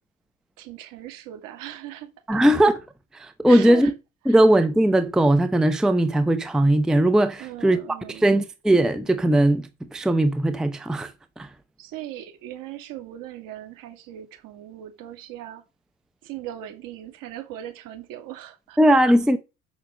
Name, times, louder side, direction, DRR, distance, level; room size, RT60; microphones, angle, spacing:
voice 1, 0.6-2.4 3.4-3.9 4.3-4.4 7.4-8.4 11.8-15.6 16.2-18.9, right 12 dB, 50° right, 2.5 m, -39 dB
voice 2, 2.3-2.8 3.1-3.9 4.3-7.8 8.1-11.1 11.4-11.5 18.8-19.4, right 1 dB, ahead, 0.7 m, -19 dB
6.6 x 6.2 x 6.5 m
figure-of-eight pair, 65°, 42 cm